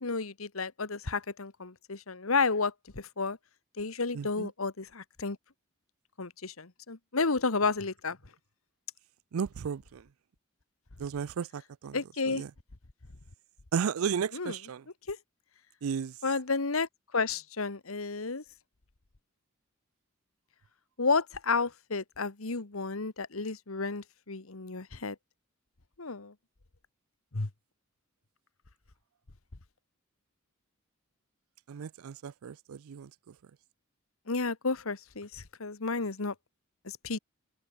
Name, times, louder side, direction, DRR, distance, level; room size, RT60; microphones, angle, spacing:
voice 1, 0.0-3.4 3.8-5.4 6.2-8.2 11.9-12.4 14.3-14.6 15.1-15.2 16.2-18.4 21.0-25.1 26.0-26.3 27.3-27.5 34.3-36.3 36.8-37.2, left 4 dB, 80° left, 1.5 m, -32 dB
voice 2, 4.1-4.5 9.3-10.0 11.0-12.0 12.3-12.5 13.7-14.8 15.8-16.1 31.7-33.1, right 7 dB, 85° right, 0.4 m, -34 dB
open air
head